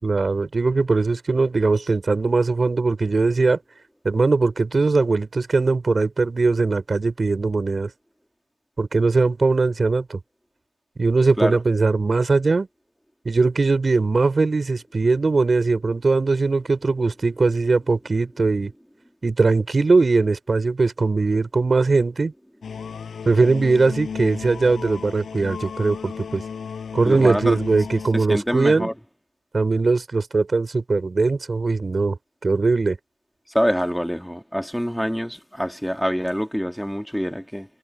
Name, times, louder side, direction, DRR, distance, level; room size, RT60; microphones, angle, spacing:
voice 1, 0.0-3.6 4.0-7.9 8.8-10.2 11.0-12.7 13.2-18.7 19.2-22.3 23.2-26.4 26.9-28.9 29.5-32.2 32.4-33.0, right 3 dB, 25° right, 5.0 m, -20 dB
sound 1, 22.6-28.1, left 6 dB, 45° left, 7.8 m, -34 dB
voice 2, 27.0-27.6 28.1-28.9 33.5-37.7, equal, ahead, 2.7 m, -25 dB
cardioid pair, 90°, 0 cm